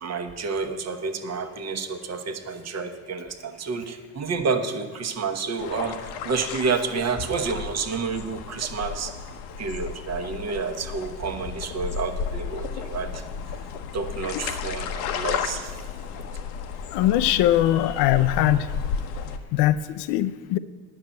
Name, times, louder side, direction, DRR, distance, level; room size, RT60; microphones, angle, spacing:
voice 1, 0.0-9.1 9.6-13.2 13.9-15.7, right 5 dB, 35° right, 7 dB, 1.1 m, -29 dB
sound 1, 5.6-19.4, left 6 dB, 75° left, 0.9 m, -33 dB
voice 2, 16.9-18.7 19.5-20.6, left 13 dB, 60° left, 11 dB, 0.5 m, -21 dB
9.8 x 6.3 x 8.0 m, 1.4 s
hypercardioid pair, 65°, 46 cm